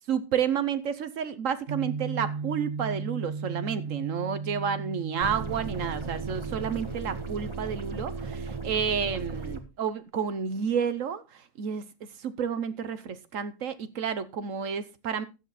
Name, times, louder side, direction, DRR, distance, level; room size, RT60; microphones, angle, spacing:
voice 1, 0.1-11.8 12.2-15.3, right 7 dB, 75° right, 1.3 m, -30 dB
sound 1, 1.7-6.8, right 5 dB, 50° right, 1.0 m, -36 dB
sound 2, 5.2-9.6, right 4 dB, 20° right, 1.8 m, -36 dB
13.5 x 9.0 x 4.1 m
omnidirectional pair, 1.4 m